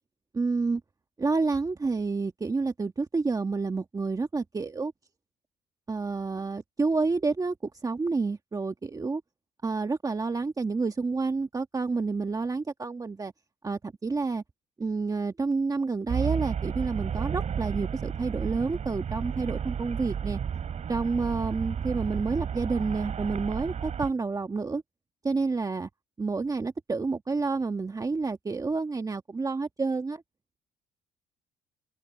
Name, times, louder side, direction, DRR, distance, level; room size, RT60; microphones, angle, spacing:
voice 1, 0.3-0.8 1.2-4.9 5.9-9.2 9.6-13.3 13.6-14.4 14.8-20.4 20.9-24.8 25.2-25.9 26.2-30.2, right 4 dB, 20° right, 1.4 m, -29 dB
Traffic noise roadway noise, 16.1-24.1, right 7 dB, 45° right, 2.8 m, -32 dB
open air
cardioid pair, 110°, 17 cm